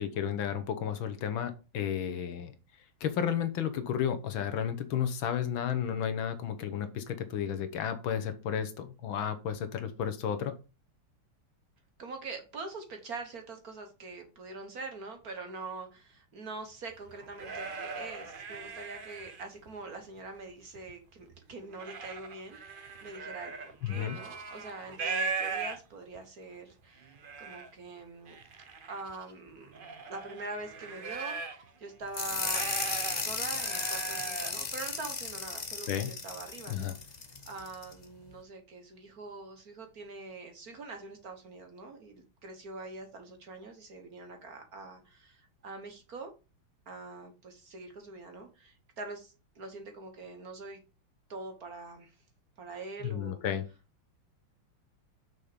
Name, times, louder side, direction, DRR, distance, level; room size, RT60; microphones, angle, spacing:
voice 1, 0.0-2.5 3.0-10.5 23.8-24.2 35.9-36.1 36.7-36.9 53.0-53.6, left 9 dB, 70° left, 1.7 m, -32 dB
voice 2, 12.0-28.4 28.8-29.7 30.1-32.7 33.2-37.1 37.5-46.3 46.9-50.8 51.3-52.1 52.6-53.4, right 3 dB, 50° right, 1.5 m, -44 dB
sound 1, 16.9-19.7 20.2-20.9 21.3-26.2 26.7-26.8 27.0-27.7 28.3-31.7 32.0-34.6, right 4 dB, 75° right, 0.4 m, -39 dB
sound 2, 32.1-37.9, left 4 dB, 50° left, 0.5 m, -35 dB
6.3 x 5.5 x 5.0 m
omnidirectional pair, 2.4 m